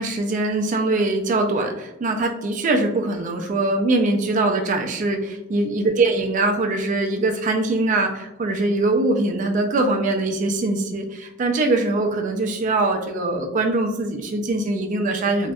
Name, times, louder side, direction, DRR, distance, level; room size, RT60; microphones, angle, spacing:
voice 1, 0.0-15.5, right 2 dB, 40° right, 4 dB, 0.3 m, -22 dB
2.6 x 2.1 x 2.3 m, 0.93 s
head